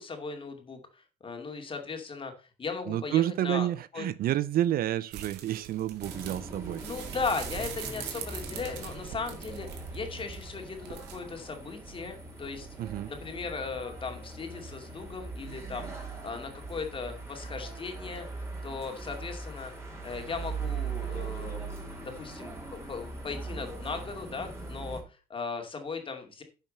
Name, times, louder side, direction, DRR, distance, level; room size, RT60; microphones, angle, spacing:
voice 1, 0.0-3.7 3.9-4.0 6.8-12.7 13.1-15.9 16.2-18.3 18.6-19.7 20.0-26.4, left 4 dB, 30° left, 2.5 m, -37 dB
voice 2, 2.9-6.8 12.8-13.1, right 12 dB, 60° right, 0.6 m, -29 dB
sound 1, 5.1-11.2, right 9 dB, 85° right, 2.0 m, -42 dB
sound 2, 6.0-25.0, right 4 dB, 15° right, 3.2 m, -40 dB
10.5 x 5.6 x 5.4 m
cardioid pair, 110°, 17 cm